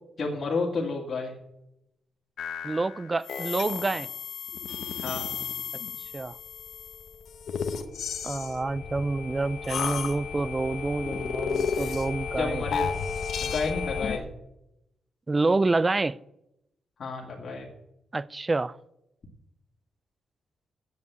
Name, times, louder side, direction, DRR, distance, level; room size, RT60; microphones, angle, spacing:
voice 1, 0.2-1.3 5.0-5.4 12.4-12.9 13.4-14.3 17.0-17.7, left 3 dB, 45° left, 2.1 m, -31 dB
sound 1, 2.4-14.2, left 6 dB, 70° left, 1.1 m, -33 dB
voice 2, 2.6-4.1 6.1-6.4 8.2-12.6 15.3-16.2 18.1-18.8, right 3 dB, 25° right, 0.4 m, -27 dB
9.3 x 8.3 x 8.1 m
cardioid pair, 110°, 0 cm